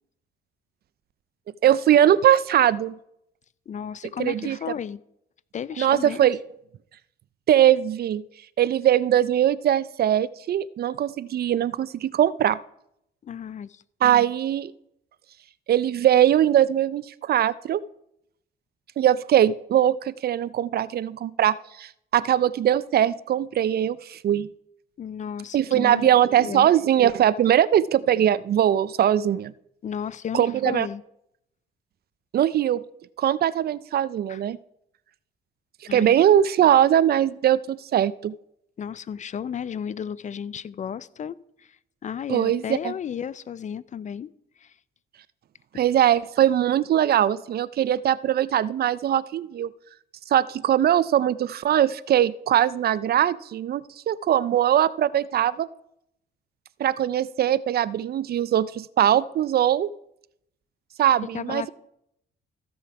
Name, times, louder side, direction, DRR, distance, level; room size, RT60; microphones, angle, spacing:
voice 1, 1.6-3.0 4.2-4.6 5.8-6.4 7.5-8.2 8.6-12.6 14.0-14.7 15.7-17.8 19.0-24.5 25.5-29.5 30.3-30.9 32.3-32.8 33.2-34.6 35.9-38.3 42.3-42.9 45.8-49.7 50.3-55.7 56.8-59.9 61.0-61.7, right 11 dB, 50° right, 0.4 m, -21 dB
voice 2, 3.7-5.0 5.5-6.2 13.2-13.8 25.0-26.7 29.8-31.0 34.3-34.4 35.9-36.1 38.8-44.3 44.6-44.7 61.3-61.7, left 8 dB, 40° left, 0.4 m, -34 dB
14.5 x 6.9 x 4.7 m
cardioid pair, 90°, 20 cm